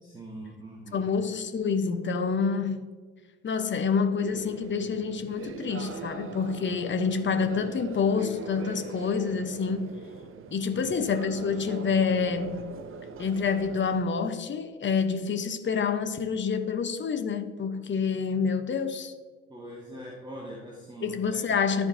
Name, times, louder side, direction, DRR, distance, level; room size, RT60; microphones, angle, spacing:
voice 1, 0.0-1.1 10.7-10.9 19.5-21.5, right 1 dB, 15° right, 1.8 m, -42 dB
voice 2, 0.9-2.9 3.4-9.9 10.5-12.6 13.2-19.1 21.0-21.9, left 5 dB, 35° left, 1.0 m, -27 dB
sound 1, 4.2-14.0, right 5 dB, 40° right, 0.8 m, -41 dB
13.5 x 4.7 x 2.8 m
hypercardioid pair, 55°, 32 cm